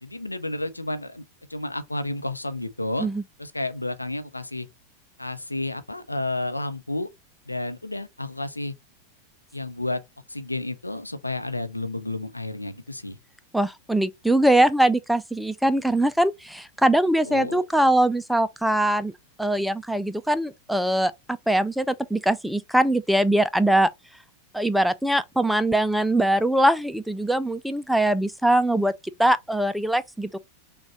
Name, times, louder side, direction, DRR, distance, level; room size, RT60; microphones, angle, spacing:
voice 1, 0.0-1.2 1.5-3.1 3.4-4.7 5.2-7.1 7.5-8.7 9.5-10.0 10.3-13.2 17.2-17.6, left 2 dB, 85° left, 0.6 m, -31 dB
voice 2, 13.5-19.1 19.4-21.1 21.5-23.9 24.5-28.9 29.2-30.4, right 1 dB, ahead, 0.3 m, -22 dB
6.0 x 2.3 x 3.0 m
figure-of-eight pair, 90°, 0 cm